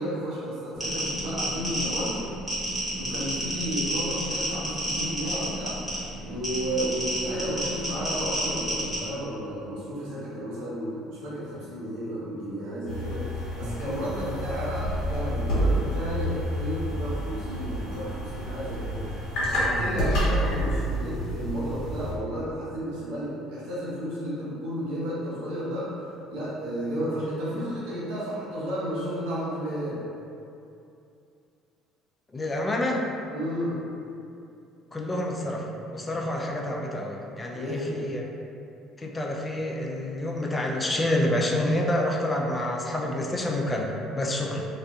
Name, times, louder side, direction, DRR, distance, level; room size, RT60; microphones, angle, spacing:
voice 1, 0.0-2.1 3.0-5.8 6.2-25.9 26.3-30.0 33.3-33.8 37.5-38.0, equal, 70° right, -9 dB, 0.9 m, -32 dB
sound 1, 0.8-9.0, right 1 dB, 15° right, 1.2 m, -31 dB
sound 2, 12.9-22.1, equal, 65° left, 1.1 m, -29 dB
voice 2, 32.3-33.0 34.9-38.2 39.0-44.7, left 1 dB, 25° left, 0 dB, 0.4 m, -28 dB
2.4 x 2.3 x 2.3 m, 2.6 s
hypercardioid pair, 60°, 0 cm